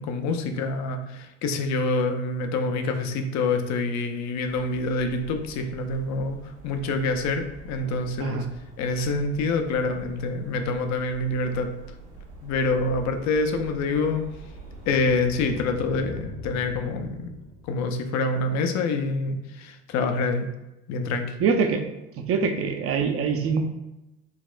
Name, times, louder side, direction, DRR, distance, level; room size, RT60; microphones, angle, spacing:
voice 1, 0.0-6.4 6.6-8.4 8.8-11.7 12.4-14.2 14.9-17.3 17.7-20.5 20.9-21.3, left 3 dB, 60° left, 6 dB, 0.5 m, -26 dB
sound 1, 4.4-15.7, right 3 dB, 70° right, 0.9 m, -45 dB
sound 2, 14.2-18.4, left 3 dB, 85° left, 1.3 m, -43 dB
voice 2, 21.4-21.8 22.3-23.6, right 5 dB, 45° right, 6 dB, 0.5 m, -24 dB
4.0 x 2.1 x 2.4 m, 0.94 s
supercardioid pair, 75°, 33 cm